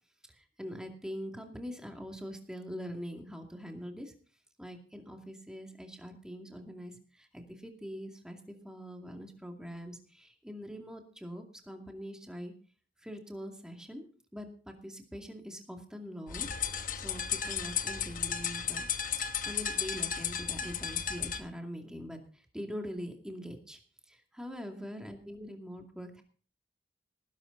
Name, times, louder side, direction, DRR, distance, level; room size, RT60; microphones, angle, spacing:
voice 1, 0.3-4.1 4.6-12.5 13.0-14.0 14.3-18.9 19.4-23.8 24.1-26.2, equal, 5° right, 3 dB, 2.4 m, -43 dB
sound 1, 16.3-21.4, left 8 dB, 50° left, 1.0 m, -34 dB
19.0 x 11.5 x 4.0 m, 0.42 s
head